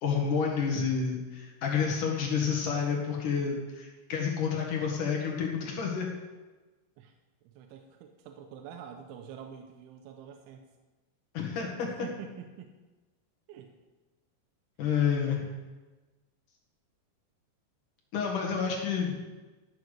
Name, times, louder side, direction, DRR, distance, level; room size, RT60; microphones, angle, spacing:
voice 1, 0.0-6.1 11.3-12.1 14.8-15.5 18.1-19.2, left 6 dB, 55° left, 0 dB, 2.7 m, -29 dB
voice 2, 7.5-10.6 11.8-12.7 13.5-13.7, right 8 dB, 85° right, 4 dB, 3.1 m, -46 dB
13.0 x 7.1 x 6.5 m, 1.2 s
omnidirectional pair, 5.5 m